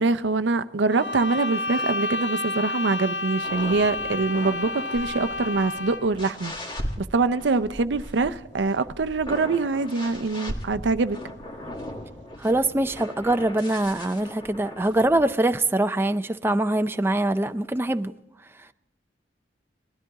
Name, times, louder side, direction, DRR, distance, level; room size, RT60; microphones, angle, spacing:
voice 1, 0.0-6.5 7.0-11.2, right 3 dB, 85° right, 0.6 m, -24 dB
sound 1, 0.9-6.2, left 2 dB, 80° left, 1.1 m, -30 dB
sound 2, 3.4-15.3, left 1 dB, 25° left, 1.6 m, -38 dB
voice 2, 12.4-18.1, right 1 dB, 15° right, 0.4 m, -23 dB
20.0 x 13.0 x 3.6 m
head